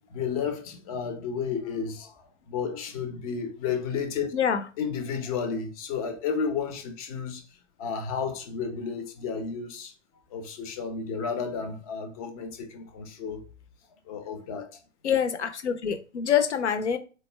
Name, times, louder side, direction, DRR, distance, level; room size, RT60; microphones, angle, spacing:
voice 1, 0.1-4.3 4.8-7.4 7.8-9.9 10.3-13.4 14.1-14.7, left 6 dB, 30° left, 0.7 m, -32 dB
voice 2, 15.0-17.0, left 8 dB, 65° left, 0.7 m, -25 dB
4.0 x 2.1 x 3.3 m
figure-of-eight pair, 115°, 38 cm